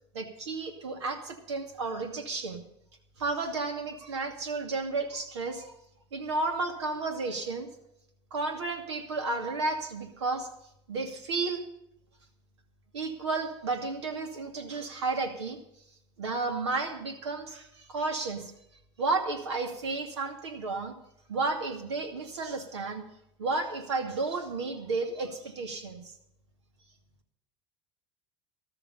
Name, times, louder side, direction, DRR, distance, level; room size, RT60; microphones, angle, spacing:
voice 1, 0.1-2.6 3.2-5.7 6.1-7.7 8.3-10.5 10.9-11.6 12.9-15.6 16.2-18.5 19.0-20.9 21.3-23.0 23.4-26.1, right 3 dB, 85° right, 5 dB, 2.5 m, -32 dB
14.0 x 12.5 x 5.4 m, 0.79 s
hypercardioid pair, 85°, 14 cm